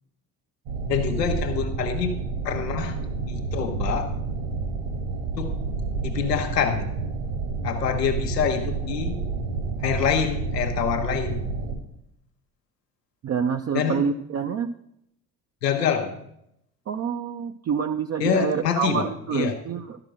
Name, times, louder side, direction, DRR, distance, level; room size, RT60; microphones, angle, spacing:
sound 1, 0.7-11.8, right 4 dB, 70° right, 2.2 m, -29 dB
voice 1, 0.9-2.1 2.4-2.9 3.3-4.1 5.4-5.6 6.0-6.9 7.6-9.2 9.8-11.4 13.7-14.0 15.6-16.1 18.2-19.1 19.3-19.6, left 8 dB, 85° left, 4 dB, 0.8 m, -26 dB
voice 2, 13.2-14.7 16.9-20.0, right 6 dB, 35° right, 5 dB, 0.6 m, -27 dB
12.0 x 5.9 x 6.2 m, 0.77 s
figure-of-eight pair, 55°, 47 cm